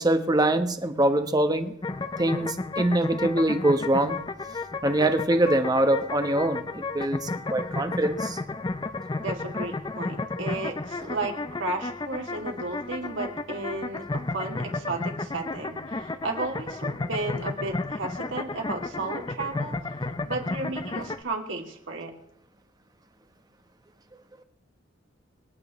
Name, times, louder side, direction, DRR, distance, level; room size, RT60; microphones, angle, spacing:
voice 1, 0.0-1.7 2.2-4.2 4.8-8.4, right 1 dB, 20° right, 8 dB, 1.1 m, -24 dB
sound 1, 1.8-21.2, left 3 dB, 25° left, 0.6 m, -33 dB
voice 2, 9.2-22.1, right 2 dB, 75° right, 1 dB, 2.7 m, -34 dB
27.0 x 9.5 x 3.2 m, 0.80 s
head